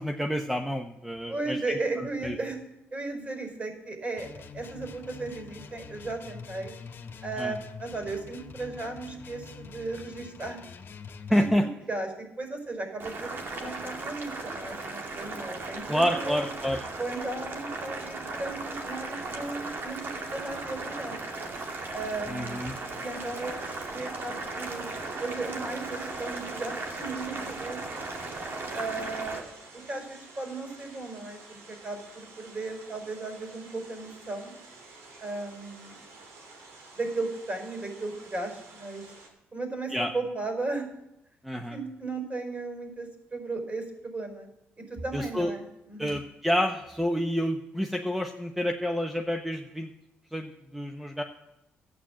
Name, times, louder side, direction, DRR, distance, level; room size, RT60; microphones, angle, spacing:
voice 1, 0.0-1.8 2.2-2.4 7.4-7.5 11.3-11.7 15.9-16.8 22.3-22.8 39.9-40.1 41.4-41.8 45.1-45.5 46.0-49.9 50.3-51.2, equal, 5° right, 4 dB, 1.0 m, -28 dB
voice 2, 1.3-2.6 2.9-6.7 7.2-10.6 11.3-16.5 17.0-21.2 21.9-22.6 23.0-24.8 25.2-28.1 28.7-29.4 29.9-34.5 35.2-36.0 36.9-39.1 39.5-40.9 41.7-44.5 44.9-46.2, right 3 dB, 35° right, 5 dB, 4.9 m, -36 dB
sound 1, 4.1-11.6, left 6 dB, 50° left, 1.5 m, -45 dB
Boiling, 13.0-29.4, right 3 dB, 55° right, 2.2 m, -37 dB
sound 2, 21.7-39.3, right 3 dB, 90° right, 2.8 m, -51 dB
13.0 x 8.8 x 7.5 m, 0.86 s
cardioid pair, 80°, 5 cm